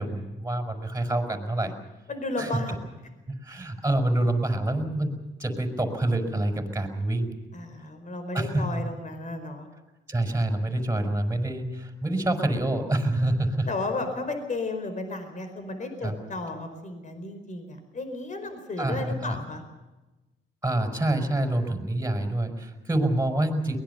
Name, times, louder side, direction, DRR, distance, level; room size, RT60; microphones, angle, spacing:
voice 1, 0.0-1.7 2.4-2.5 3.3-7.3 8.3-8.9 10.1-13.7 16.0-16.1 18.8-19.4 20.6-23.8, right 1 dB, 15° right, 4 dB, 5.1 m, -27 dB
voice 2, 2.1-2.8 7.5-9.7 13.7-19.6, left 2 dB, 40° left, 7 dB, 4.6 m, -33 dB
23.0 x 20.5 x 6.9 m, 1.1 s
cardioid pair, 90°, 20 cm